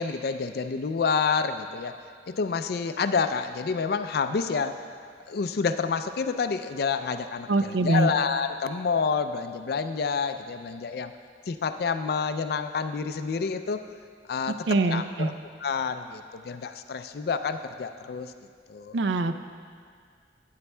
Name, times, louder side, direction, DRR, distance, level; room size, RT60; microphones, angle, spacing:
voice 1, 0.0-1.9 2.4-4.8 5.3-11.1 11.5-13.8 14.3-14.6 14.9-15.3 15.6-18.3 18.7-19.0, left 5 dB, 60° left, 9 dB, 0.4 m, -28 dB
voice 2, 7.5-8.1 14.7-15.3 18.9-19.3, right 2 dB, 80° right, 9 dB, 0.4 m, -23 dB
12.5 x 9.5 x 2.2 m, 2.1 s
head